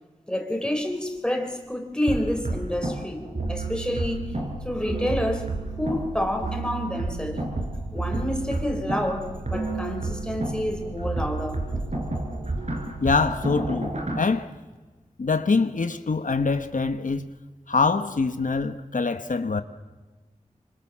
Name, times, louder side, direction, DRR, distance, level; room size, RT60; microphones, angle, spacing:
voice 1, 0.3-4.4 4.6-7.5 7.9-11.6, left 1 dB, 5° left, 4.4 m, -29 dB
sound 1, 2.1-14.2, right 2 dB, 60° right, 5.6 m, -31 dB
voice 2, 13.0-14.5 15.2-17.3 17.7-19.6, left 4 dB, 90° left, 1.2 m, -24 dB
26.0 x 25.5 x 7.5 m
wide cardioid pair, 70°, 13 cm